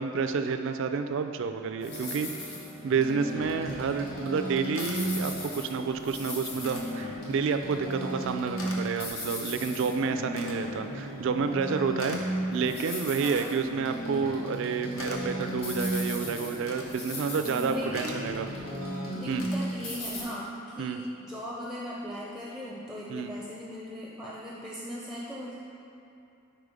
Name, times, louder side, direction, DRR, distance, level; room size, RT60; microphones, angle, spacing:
voice 1, 0.0-2.3 2.8-18.5 19.3-19.5 20.8-21.0 23.1-23.3, right 5 dB, 65° right, 8 dB, 0.3 m, -29 dB
sound 1, 1.8-20.2, equal, 50° left, 1.4 m, -35 dB
sound 2, 3.4-20.3, left 2 dB, 75° left, 0.8 m, -48 dB
voice 2, 3.7-4.2 13.2-13.5 17.7-18.4 19.1-25.6, equal, ahead, -5 dB, 0.5 m, -39 dB
4.8 x 4.5 x 5.1 m, 2.9 s
head